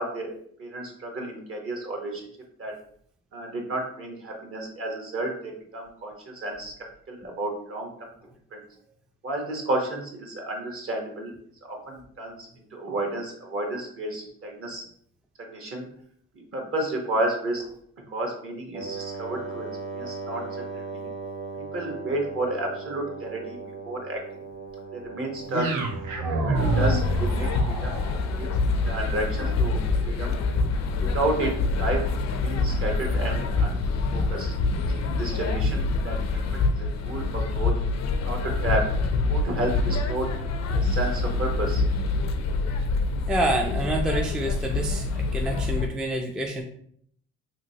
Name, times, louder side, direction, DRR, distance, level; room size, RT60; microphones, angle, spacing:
voice 1, 0.0-2.2 2.6-2.8 3.3-6.7 7.1-8.1 8.5-8.6 9.2-11.3 11.7-14.9 15.4-15.9 16.3-17.6 18.1-20.4 20.7-21.1 21.7-23.6 23.8-24.2 24.9-25.8 26.2-28.0 28.4-28.5 28.8-30.4 31.1-32.1 32.4-33.8 34.1-34.5 34.9-36.4 36.8-37.7 38.2-38.9 39.3-40.3 40.7-41.8, right 1 dB, 45° right, 1 dB, 1.0 m, -31 dB
Wind instrument woodwind instrument, 18.7-26.3, right 4 dB, 25° right, 0.8 m, -37 dB
sound 1, 25.5-33.7, right 2 dB, 80° right, 0.7 m, -31 dB
sound 2, 26.5-45.9, left 3 dB, 60° left, 0.4 m, -26 dB
voice 2, 43.3-45.1 45.3-46.6, right 1 dB, 5° right, 1 dB, 0.3 m, -27 dB
3.0 x 2.8 x 2.7 m, 0.64 s
cardioid pair, 90°, 30 cm